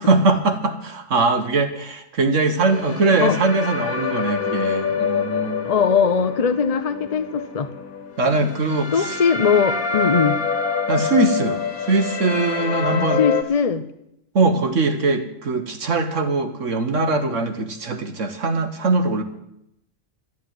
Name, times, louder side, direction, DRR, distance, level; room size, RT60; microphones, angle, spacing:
voice 1, 0.0-5.7 8.2-9.2 10.9-11.6 11.9-13.2 14.3-19.2, right 3 dB, 65° right, 7 dB, 1.5 m, -21 dB
sound 1, 2.7-13.4, left 6 dB, 85° left, 1.6 m, -26 dB
voice 2, 5.6-7.7 8.9-10.4 12.9-13.8, left 6 dB, 40° left, 9 dB, 0.5 m, -20 dB
13.0 x 9.2 x 9.3 m, 0.80 s
omnidirectional pair, 1.4 m